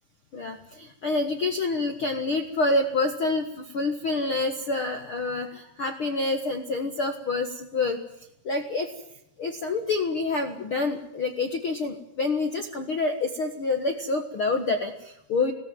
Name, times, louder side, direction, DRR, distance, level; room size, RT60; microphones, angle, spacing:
voice 1, 0.3-8.0 8.4-8.9 9.4-15.5, left 3 dB, 65° left, 6 dB, 1.3 m, -27 dB
21.0 x 18.0 x 9.3 m, 0.79 s
omnidirectional pair, 4.9 m